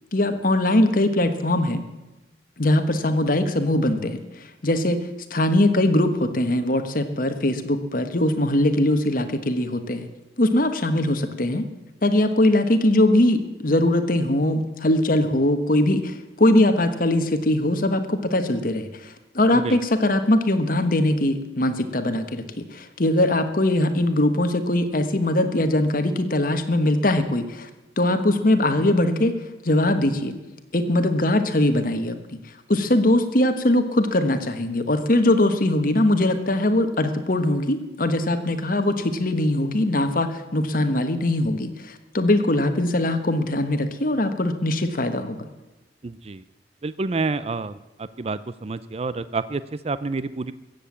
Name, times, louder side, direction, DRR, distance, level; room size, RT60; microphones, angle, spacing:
voice 1, 0.1-1.8 2.6-4.2 4.6-10.1 10.4-11.7 12.0-22.4 22.7-27.7 28.0-29.3 29.6-30.3 30.7-32.2 32.7-45.4, left 1 dB, 50° left, 8 dB, 1.3 m, -21 dB
voice 2, 46.0-46.4 46.8-47.7 48.0-50.5, right 3 dB, 35° right, 15 dB, 0.4 m, -28 dB
15.0 x 7.9 x 8.6 m, 1.1 s
head